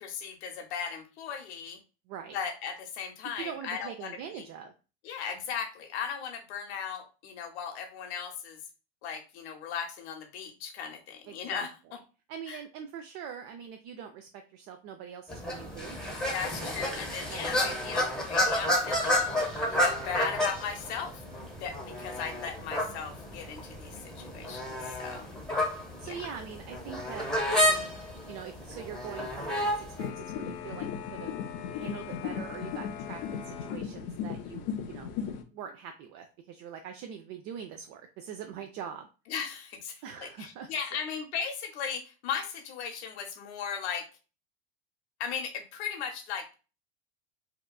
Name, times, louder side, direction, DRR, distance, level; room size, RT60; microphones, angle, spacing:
voice 1, 0.0-1.8 2.3-4.4 5.0-8.6 9.0-11.7 12.5-12.6 16.3-19.4 19.7-21.2 21.6-25.3 26.0-26.2 39.3-44.1 45.2-46.5, left 7 dB, 80° left, 4 dB, 0.8 m, -37 dB
voice 2, 2.1-2.4 3.4-4.7 11.3-11.9 12.3-16.0 16.8-17.9 26.0-27.9 28.3-31.4 31.7-35.1 35.5-39.1 40.0-41.0, right 8 dB, 45° right, 6 dB, 0.4 m, -43 dB
sound 1, 15.3-30.1, left 1 dB, ahead, 0.8 m, -31 dB
sound 2, 30.0-35.4, left 8 dB, 50° left, 0.5 m, -36 dB
2.8 x 2.3 x 2.2 m, 0.33 s
supercardioid pair, 110°, 33 cm